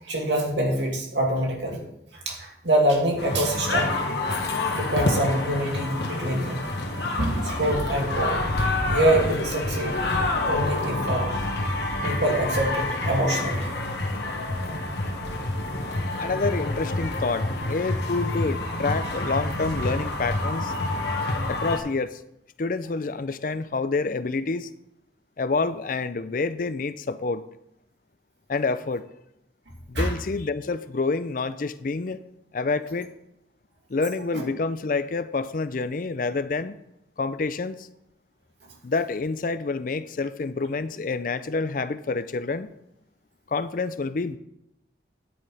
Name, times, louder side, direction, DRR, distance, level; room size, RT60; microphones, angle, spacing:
voice 1, 0.1-1.8 2.3-3.9 4.7-6.6 7.2-8.4 8.9-10.0 10.4-11.3 12.0-13.7 29.9-30.1 34.3-34.4, right 1 dB, 80° right, -1 dB, 2.5 m, -25 dB
sound 1, 3.2-21.8, left 2 dB, 70° left, 1.5 m, -28 dB
voice 2, 16.2-20.7 21.5-22.2 22.6-24.7 25.4-27.4 28.5-29.0 29.9-32.2 32.5-33.1 33.9-36.7 37.2-37.9 38.8-42.7 43.5-44.4, left 3 dB, 50° left, 13 dB, 0.5 m, -28 dB
10.0 x 9.4 x 3.4 m, 0.81 s
head